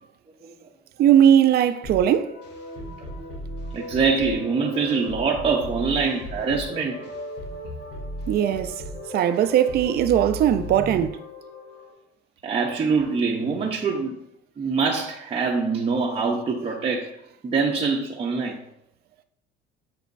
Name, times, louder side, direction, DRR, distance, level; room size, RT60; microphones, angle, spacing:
voice 1, 1.0-2.4 8.3-8.8 9.1-11.2, right 10 dB, 55° right, 0.5 m, -19 dB
sound 1, 1.8-11.9, left 1 dB, 60° left, 2.3 m, -36 dB
voice 2, 3.7-7.1 12.4-14.2 14.6-17.2 17.4-18.6, right 4 dB, 30° right, 0.8 m, -24 dB
7.5 x 5.0 x 2.6 m
cardioid pair, 115°, 20 cm